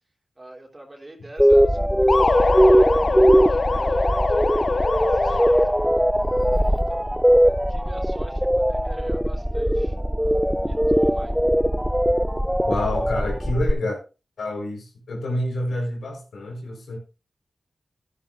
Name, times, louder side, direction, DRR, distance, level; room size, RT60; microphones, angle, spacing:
voice 1, 0.4-10.0 10.6-11.3, right 1 dB, 30° right, 3.6 m, -46 dB
sound 1, 1.4-13.7, equal, 5° right, 0.4 m, -20 dB
sound 2, 2.1-6.0, left 3 dB, 50° left, 0.5 m, -23 dB
voice 2, 12.7-14.0 14.4-17.0, left 1 dB, 85° left, 4.6 m, -28 dB
13.5 x 11.0 x 2.6 m
cardioid pair, 50°, 0 cm